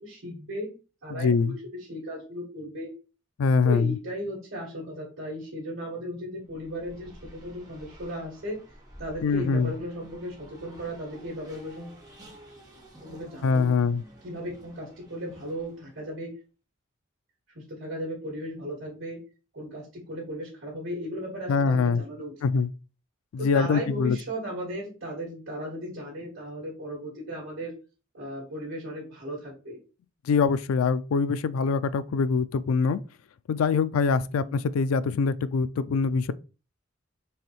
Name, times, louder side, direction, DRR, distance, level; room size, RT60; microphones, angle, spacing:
voice 1, 0.0-0.7 1.0-2.9 3.6-8.6 9.0-12.0 13.0-13.6 14.2-16.3 17.5-19.2 19.5-22.3 23.4-27.7 28.1-29.8 34.3-34.7, equal, 70° right, 2.2 m, -36 dB
voice 2, 1.1-1.6 3.4-4.0 9.2-9.7 13.4-14.0 21.5-22.0 22.4-22.7 23.3-24.2 30.2-33.0 33.5-36.3, left 5 dB, 90° left, 0.3 m, -24 dB
Race car auto racing, 6.4-16.1, right 1 dB, 20° right, 1.1 m, -50 dB
4.7 x 3.1 x 3.1 m
head